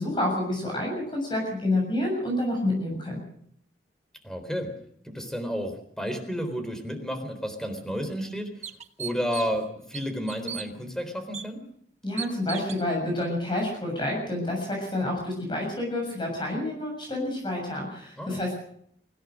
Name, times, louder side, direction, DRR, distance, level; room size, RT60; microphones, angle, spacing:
voice 1, 0.0-3.2 12.0-18.6, left 1 dB, 25° left, 0 dB, 7.0 m, -28 dB
voice 2, 4.2-4.7 5.0-8.7 9.0-11.6 18.2-18.4, equal, 5° left, 7 dB, 3.9 m, -31 dB
sound 1, 7.6-7.7 8.2-8.3 8.6-9.6 9.9-10.7 11.3-11.5 12.2-12.8, right 8 dB, 40° right, 1.2 m, -37 dB
24.5 x 17.0 x 6.5 m, 0.68 s
head